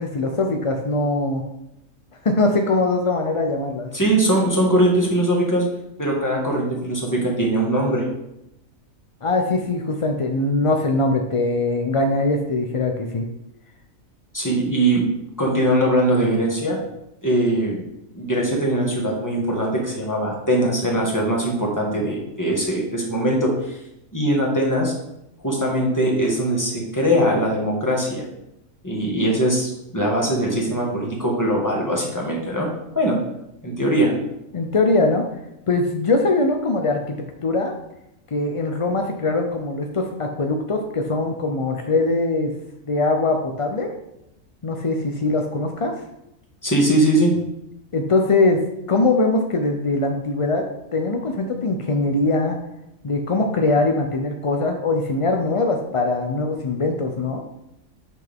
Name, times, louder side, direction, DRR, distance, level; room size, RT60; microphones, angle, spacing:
voice 1, 0.0-1.4 2.2-3.9 9.2-13.3 34.5-35.2 35.7-37.2 37.4-37.7 38.3-42.5 42.9-43.9 44.6-45.9 47.9-48.6 48.9-50.6 50.9-52.6 53.0-57.4, left 2 dB, 50° left, 3 dB, 0.3 m, -21 dB
voice 2, 3.9-5.7 6.0-8.1 14.3-15.1 15.4-16.8 17.2-17.8 18.1-23.8 24.1-24.9 25.4-28.3 28.8-32.7 33.0-33.2 33.6-34.1 46.6-47.4, right 1 dB, 15° left, -2 dB, 1.6 m, -21 dB
8.3 x 5.9 x 3.6 m, 0.85 s
omnidirectional pair, 1.4 m